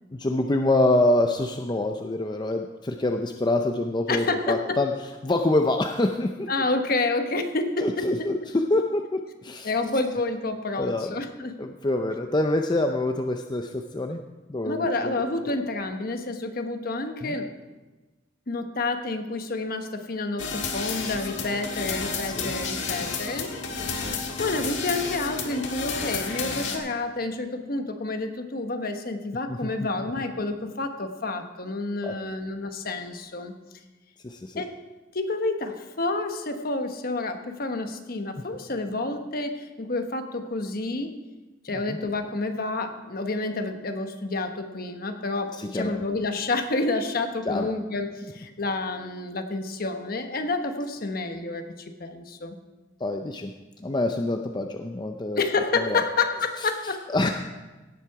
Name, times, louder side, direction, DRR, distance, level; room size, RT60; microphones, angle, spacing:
voice 1, 0.1-4.9 5.2-6.5 7.8-9.7 10.8-11.1 11.6-14.2 14.5-15.1 15.4-15.5 17.2-17.4 22.2-22.5 29.5-29.9 32.0-32.1 34.2-34.6 41.7-42.0 45.5-45.9 47.5-47.7 53.0-53.5 53.8-55.4 55.8-56.0 56.6-56.7 57.1-57.3, left 2 dB, 25° left, 4 dB, 0.5 m, -26 dB
voice 2, 4.1-4.8 6.5-8.3 9.6-11.6 14.6-17.5 18.5-23.5 23.9-24.0 24.4-33.5 34.5-34.8 35.1-41.1 41.6-52.6 55.4-57.0, left 3 dB, 50° left, 6 dB, 1.1 m, -29 dB
sound 1, 20.4-26.8, left 4 dB, 80° left, 1.7 m, -31 dB
17.0 x 7.6 x 4.8 m, 1.2 s
head